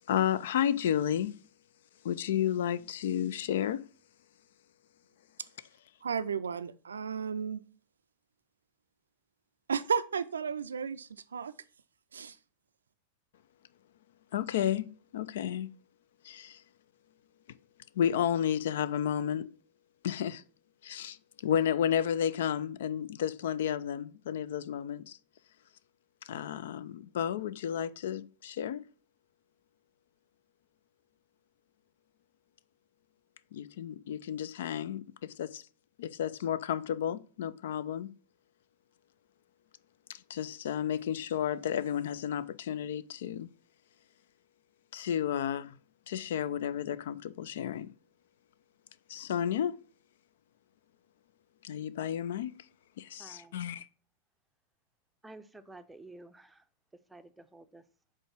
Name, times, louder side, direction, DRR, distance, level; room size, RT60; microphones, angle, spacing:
voice 1, 0.1-1.4 2.0-3.9 14.3-14.9 15.1-15.7 16.2-16.6 18.0-19.5 20.0-20.4 20.8-21.2 21.4-25.2 26.3-28.8 33.5-35.6 36.0-38.1 40.3-43.5 44.9-45.8 46.1-47.9 49.1-49.8 51.6-52.6 53.0-53.9, left 9 dB, 65° left, 0.4 m, -32 dB
voice 2, 6.0-7.6 9.7-11.5 12.1-12.4, right 6 dB, 80° right, 0.3 m, -33 dB
voice 3, 53.2-53.6 55.2-56.6 57.1-57.8, right 2 dB, 5° right, 0.6 m, -51 dB
5.3 x 3.6 x 5.7 m
figure-of-eight pair, 95°, 0 cm